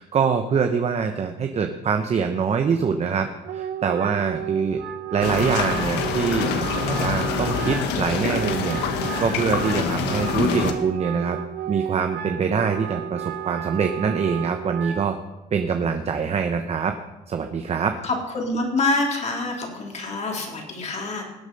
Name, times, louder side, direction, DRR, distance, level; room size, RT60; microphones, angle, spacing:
voice 1, 0.0-4.8 5.1-8.8 9.2-11.4 11.7-15.2 15.5-16.9 17.3-18.0, right 6 dB, 40° right, 6 dB, 1.0 m, -24 dB
Wind instrument woodwind instrument, 3.4-15.1, right 10 dB, 70° right, 1.0 m, -33 dB
sound 1, 5.2-10.7, left 6 dB, 85° left, 1.4 m, -25 dB
voice 2, 18.0-21.2, left 2 dB, 40° left, 1 dB, 3.5 m, -26 dB
19.5 x 8.2 x 5.4 m, 1.0 s
cardioid pair, 110°, 17 cm